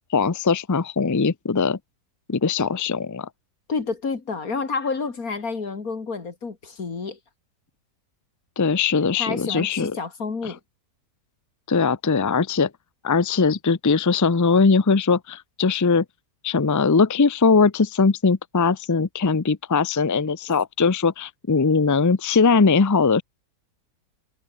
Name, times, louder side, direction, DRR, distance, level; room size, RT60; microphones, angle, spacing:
voice 1, 0.1-1.8 2.3-3.3 8.6-9.9 10.4-10.5 11.7-12.7 13.0-16.0 16.4-23.2, left 4 dB, 25° left, 0.4 m, -20 dB
voice 2, 3.7-7.2 9.2-10.6, left 4 dB, 65° left, 2.9 m, -29 dB
omnidirectional pair, 1.7 m